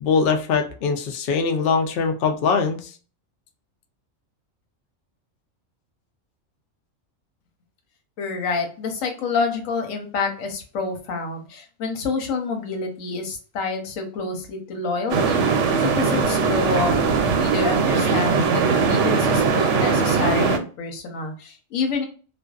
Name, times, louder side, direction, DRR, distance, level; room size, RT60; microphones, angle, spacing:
voice 1, 0.0-2.9, left 5 dB, 65° left, 5 dB, 0.6 m, -22 dB
voice 2, 8.2-15.4 15.8-16.9 17.4-22.1, left 4 dB, 85° left, 4 dB, 1.1 m, -28 dB
sound 1, 15.1-20.6, right 5 dB, 70° right, 0.8 m, -20 dB
2.5 x 2.2 x 2.3 m, 0.38 s
omnidirectional pair, 1.3 m